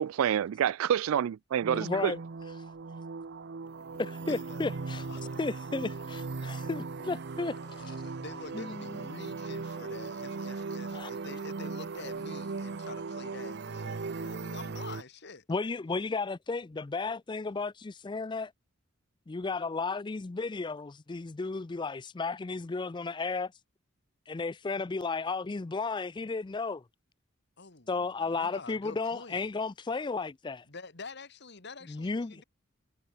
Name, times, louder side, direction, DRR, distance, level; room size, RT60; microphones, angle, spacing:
voice 1, 0.0-2.1, right 9 dB, 90° right, 0.3 m, -28 dB
sound 1, 1.6-15.0, right 4 dB, 55° right, 0.6 m, -38 dB
voice 2, 1.7-2.2 4.3-5.0 5.4-7.5 8.5-9.0 10.9-11.1 15.5-18.5 19.3-23.5 24.3-26.8 27.9-30.6 31.9-32.4, left 4 dB, 20° left, 0.4 m, -34 dB
voice 3, 4.3-5.5 6.4-6.6 7.6-15.5 27.6-29.5 30.6-32.4, left 3 dB, 55° left, 2.2 m, -47 dB
head